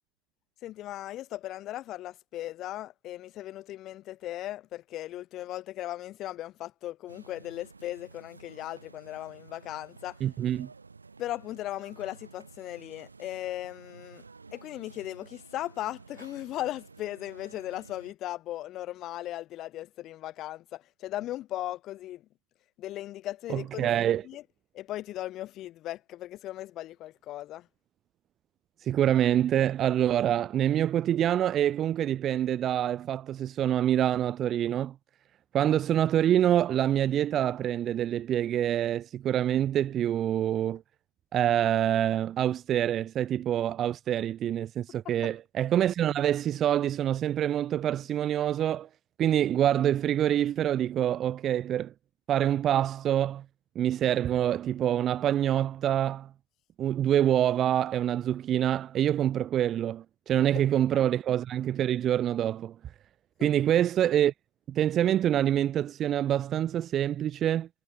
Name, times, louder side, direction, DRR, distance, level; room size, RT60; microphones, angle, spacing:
voice 1, 0.6-10.2 11.2-14.2 14.5-22.2 22.8-23.9 24.2-24.4 24.7-27.7 45.0-45.3 60.3-60.4 63.4-63.5, left 14 dB, 30° left, 3.2 m, -37 dB
sound 1, 7.1-18.1, right 4 dB, 80° right, 6.0 m, -52 dB
voice 2, 10.2-10.7 23.5-24.2 28.8-34.9 35.5-40.8 41.3-48.9 49.2-51.9 52.3-53.4 53.7-56.3 56.8-62.7 63.4-64.3 64.7-67.7, right 11 dB, 25° right, 0.8 m, -26 dB
figure-of-eight pair, 110°, 0 cm